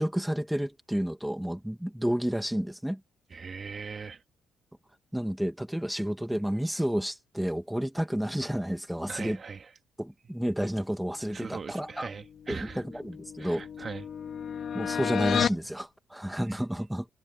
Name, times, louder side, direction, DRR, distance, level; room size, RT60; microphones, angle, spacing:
voice 1, 0.0-3.0 5.1-9.4 10.0-12.1 12.5-13.6 14.7-17.1, equal, 5° right, 2.4 m, -31 dB
voice 2, 3.3-4.2 9.1-9.7 11.3-12.8 13.4-14.1 16.3-16.6, right 5 dB, 40° right, 2.4 m, -40 dB
sound 1, 12.5-15.7, left 8 dB, 60° left, 2.6 m, -32 dB
cardioid pair, 90°, 0 cm